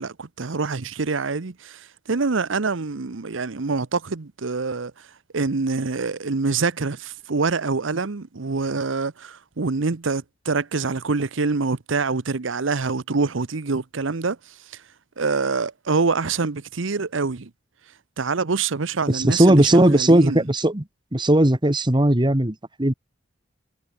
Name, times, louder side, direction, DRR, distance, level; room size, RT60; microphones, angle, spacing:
voice 1, 0.0-5.1 5.3-14.8 15.2-17.5 18.2-20.4, right 4 dB, 75° right, 0.9 m, -25 dB
voice 2, 19.1-20.8 21.1-22.9, right 1 dB, 25° right, 1.7 m, -17 dB
head